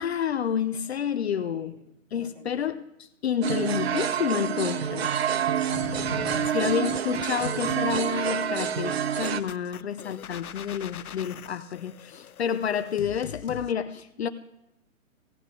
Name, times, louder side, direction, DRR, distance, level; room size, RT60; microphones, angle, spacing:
voice 1, 0.0-1.8 2.1-5.1 6.5-14.3, left 8 dB, 50° left, 0.7 m, -29 dB
voice 2, 1.5-1.9 2.1-2.7, right 2 dB, 30° right, 1.9 m, -51 dB
sound 1, 3.4-9.4, right 9 dB, 45° right, 0.6 m, -27 dB
sound 2, 5.7-13.7, left 9 dB, 85° left, 0.7 m, -42 dB
17.0 x 7.2 x 3.6 m
hypercardioid pair, 150°, 42 cm